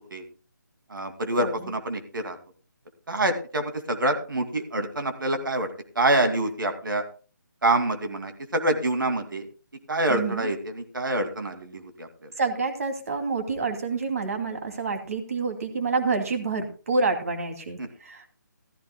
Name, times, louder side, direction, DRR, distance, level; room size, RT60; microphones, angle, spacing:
voice 1, 0.9-2.4 3.1-5.7 5.9-7.0 7.6-9.5 9.9-12.3 17.8-17.9, right 1 dB, 80° right, 7 dB, 2.4 m, -26 dB
voice 2, 10.1-10.5 12.4-18.3, right 4 dB, 50° right, 5 dB, 2.7 m, -28 dB
15.0 x 14.5 x 2.3 m, 0.36 s
hypercardioid pair, 165°, 11 cm